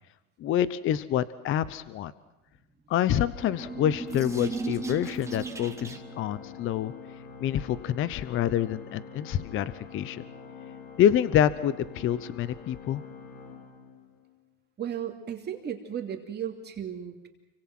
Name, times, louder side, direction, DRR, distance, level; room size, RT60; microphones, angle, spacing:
voice 1, 0.4-2.1 2.9-6.9 7.4-10.2 11.0-13.0, left 10 dB, 30° left, 16 dB, 0.9 m, -27 dB
sound 1, 3.2-6.2, right 3 dB, 5° right, 2.0 m, -36 dB
Organ, 3.3-14.5, left 5 dB, 55° left, 4.4 m, -46 dB
voice 2, 14.8-17.3, right 9 dB, 25° right, 3 dB, 2.8 m, -35 dB
29.5 x 25.0 x 6.1 m, 0.96 s
supercardioid pair, 140°, 43 cm